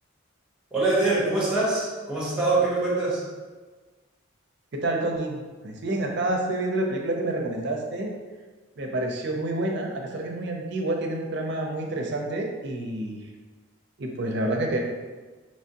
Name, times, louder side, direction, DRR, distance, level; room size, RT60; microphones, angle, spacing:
voice 1, 0.7-3.2, right 2 dB, 5° right, -7 dB, 1.0 m, -24 dB
voice 2, 4.7-8.1 8.8-13.3 14.0-14.8, right 1 dB, 55° right, 1 dB, 0.5 m, -28 dB
3.4 x 3.0 x 2.8 m, 1.3 s
head